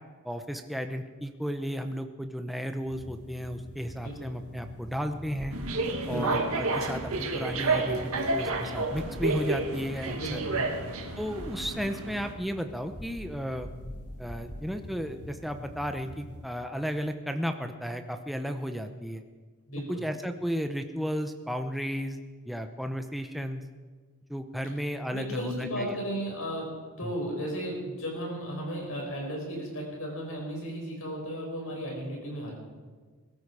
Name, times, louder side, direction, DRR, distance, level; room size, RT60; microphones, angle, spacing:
voice 1, 0.2-5.6 6.1-10.4 11.2-13.7 14.2-19.2 19.9-23.6 24.3-26.0 27.0-27.1, equal, ahead, 6 dB, 0.7 m, -34 dB
sound 1, 2.8-16.5, left 1 dB, 85° left, 1.8 m, -46 dB
sound 2, 5.4-6.3 8.9-9.8 10.7-12.0 12.9-15.2, equal, 45° left, 2.9 m, -45 dB
sound 3, 5.5-12.3, right 3 dB, 75° right, 1.7 m, -30 dB
voice 2, 6.1-6.4 10.1-10.9 19.7-20.0 25.1-32.5, equal, 70° left, 0 dB, 5.4 m, -35 dB
21.5 x 13.0 x 4.8 m, 1.4 s
head